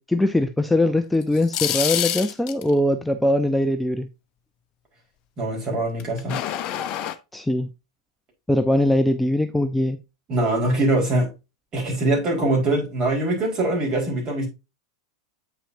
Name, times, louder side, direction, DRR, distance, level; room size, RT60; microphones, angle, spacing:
voice 1, 0.0-4.1 7.3-7.7 8.5-10.0, left 1 dB, 5° left, 0.6 m, -21 dB
sound 1, 1.2-2.7 6.0-7.1, left 11 dB, 40° left, 0.8 m, -26 dB
voice 2, 5.4-6.4 10.3-11.3 11.7-14.5, right 2 dB, 30° right, 4.5 m, -23 dB
8.4 x 5.8 x 2.7 m
figure-of-eight pair, 90°, 2 cm